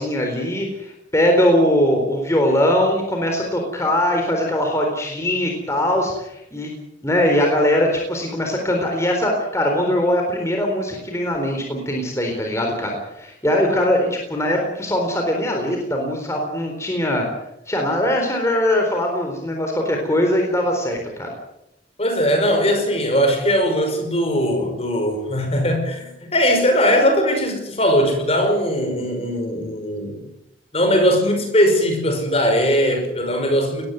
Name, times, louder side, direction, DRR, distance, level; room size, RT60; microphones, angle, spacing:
voice 1, 0.0-6.7 7.0-17.3 17.7-21.3, left 1 dB, 15° left, 4.0 m, -21 dB
voice 2, 22.0-30.2 30.7-33.9, equal, 30° left, 5.1 m, -19 dB
20.5 x 15.0 x 9.5 m
head